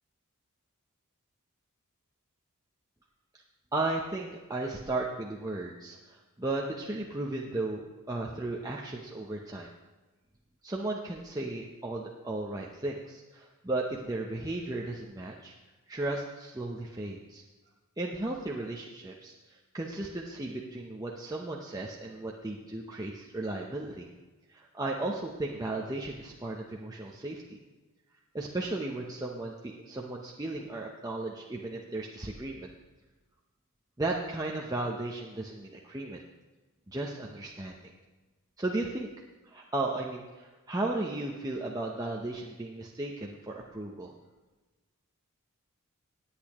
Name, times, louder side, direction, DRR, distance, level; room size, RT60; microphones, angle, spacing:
voice 1, 3.7-7.8 8.1-9.7 10.6-15.6 15.9-17.4 18.0-24.1 24.5-27.6 28.3-29.5 29.8-32.7 34.0-36.2 36.9-37.7 38.6-39.1 39.5-44.1, right 2 dB, 15° right, -2 dB, 0.7 m, -35 dB
18.5 x 8.5 x 3.0 m, 1.2 s
head